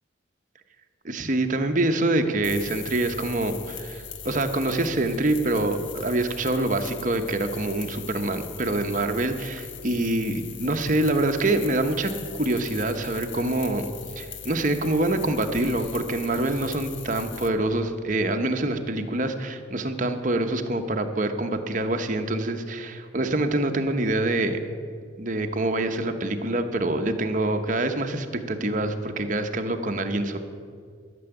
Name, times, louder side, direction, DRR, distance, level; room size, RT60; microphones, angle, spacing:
voice 1, 1.0-13.9 14.2-24.6 25.2-30.4, right 2 dB, 40° right, 6 dB, 0.9 m, -25 dB
sound 1, 2.4-17.5, left 6 dB, 70° left, 1.0 m, -40 dB
12.5 x 6.9 x 9.9 m, 2.1 s
head